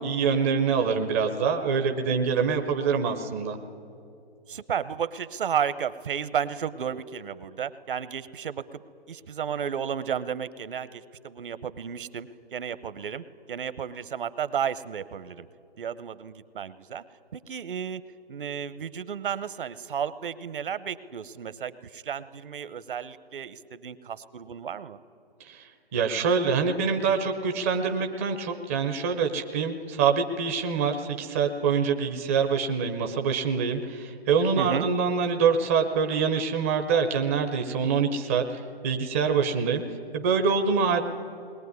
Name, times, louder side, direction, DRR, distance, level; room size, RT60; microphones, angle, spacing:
voice 1, 0.0-3.6 25.4-39.8 40.1-41.0, right 5 dB, 15° right, 5 dB, 0.5 m, -25 dB
voice 2, 4.5-8.8 9.1-15.5 15.8-17.0 17.3-18.0 18.3-25.0 34.6-34.9, right 8 dB, 55° right, 15 dB, 0.9 m, -33 dB
21.0 x 19.0 x 9.5 m, 2.6 s
hypercardioid pair, 155°, 31 cm